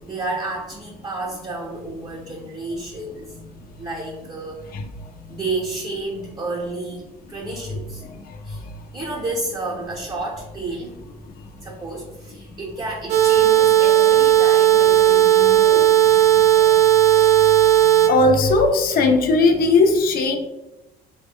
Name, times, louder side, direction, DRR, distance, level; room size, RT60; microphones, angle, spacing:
voice 1, 0.0-3.4 3.8-4.6 5.3-8.0 8.4-8.6 8.9-16.0, right 2 dB, 25° right, -3 dB, 0.6 m, -31 dB
sound 1, 13.1-18.1, right 11 dB, 75° right, 0.5 m, -15 dB
voice 2, 18.1-20.4, left 3 dB, 60° left, 5 dB, 0.5 m, -17 dB
3.1 x 2.1 x 3.5 m, 1.0 s
cardioid pair, 110°, 17 cm